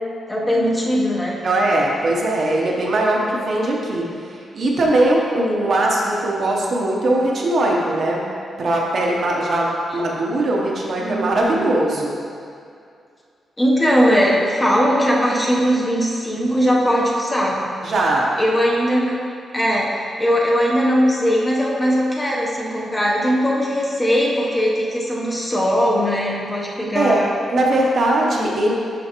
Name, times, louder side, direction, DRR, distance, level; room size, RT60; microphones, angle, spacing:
voice 1, 0.3-1.4 9.9-10.0 11.0-11.6 13.6-17.6 18.4-19.2 19.5-19.9 20.2-27.3, equal, 15° left, -4 dB, 0.8 m, -19 dB
voice 2, 1.4-4.1 4.5-8.2 8.6-12.2 17.8-18.3 26.9-27.2 27.5-28.7, right 1 dB, 50° right, -2 dB, 0.8 m, -20 dB
11.0 x 3.8 x 3.0 m, 2.4 s
wide cardioid pair, 155°, 0 cm